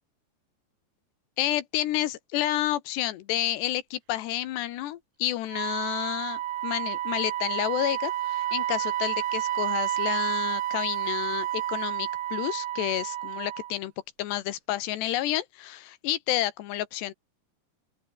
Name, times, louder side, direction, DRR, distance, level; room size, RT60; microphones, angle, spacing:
voice 1, 1.4-13.9 14.2-17.1, left 14 dB, 75° left, 3.4 m, -30 dB
Wind instrument woodwind instrument, 5.5-13.8, right 13 dB, 75° right, 1.8 m, -30 dB
open air
omnidirectional pair, 5.0 m